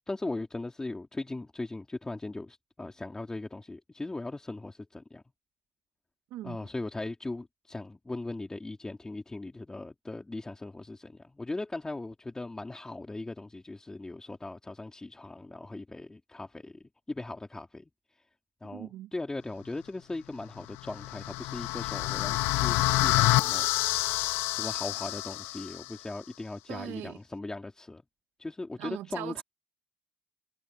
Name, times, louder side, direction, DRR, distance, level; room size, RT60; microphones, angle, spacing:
voice 1, 0.1-5.2 6.4-16.8 17.1-17.8 18.6-28.0 28.4-29.4, left 2 dB, 15° left, 3.0 m, -39 dB
voice 2, 6.3-6.7 18.6-19.1 26.7-27.2 28.8-29.4, right 14 dB, 80° right, 1.9 m, -40 dB
sound 1, 20.8-25.9, left 19 dB, 85° left, 0.5 m, -28 dB
supercardioid pair, 75°, 4 cm